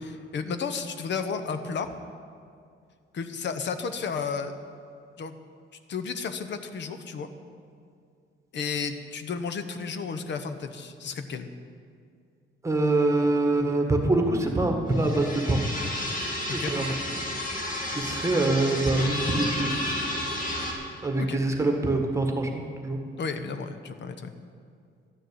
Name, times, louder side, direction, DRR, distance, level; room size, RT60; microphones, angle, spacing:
voice 1, 0.0-1.9 3.1-4.5 5.2-5.4 5.9-7.3 8.5-11.5 16.5-16.7 21.3-21.4 23.2-24.3, left 5 dB, 60° left, 8 dB, 0.9 m, -32 dB
voice 2, 12.6-15.6 16.5-16.9 17.9-19.7 21.0-23.0, right 2 dB, 15° right, 3 dB, 1.5 m, -25 dB
sound 1, 14.9-20.7, left 1 dB, 40° left, 2.3 m, -31 dB
12.5 x 6.5 x 9.6 m, 2.2 s
cardioid pair, 125°, 21 cm